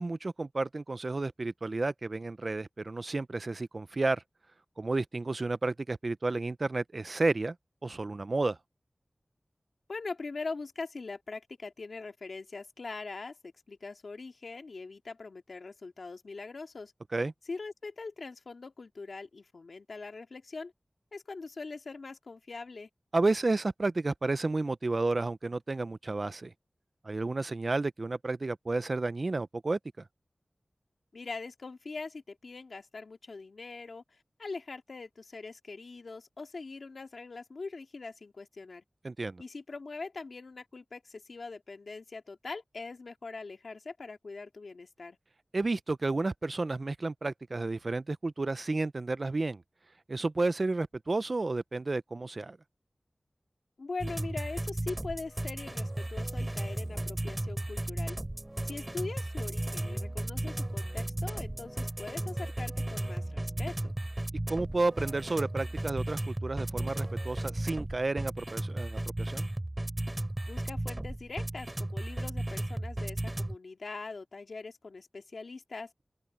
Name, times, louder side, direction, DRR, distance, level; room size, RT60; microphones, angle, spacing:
voice 1, 0.0-4.2 4.8-7.6 7.8-8.6 17.1-17.3 23.1-26.5 27.0-29.8 39.0-39.4 45.5-49.6 50.1-52.6 64.5-69.5, right 3 dB, 50° right, 0.5 m, -31 dB
voice 2, 9.9-16.9 17.5-20.7 21.1-22.9 31.1-34.0 34.4-38.8 39.4-45.2 53.8-58.2 58.6-63.9 70.5-75.9, left 3 dB, 80° left, 2.2 m, -42 dB
sound 1, 54.0-73.6, right 1 dB, 25° right, 5.7 m, -35 dB
open air
wide cardioid pair, 75°, 0 cm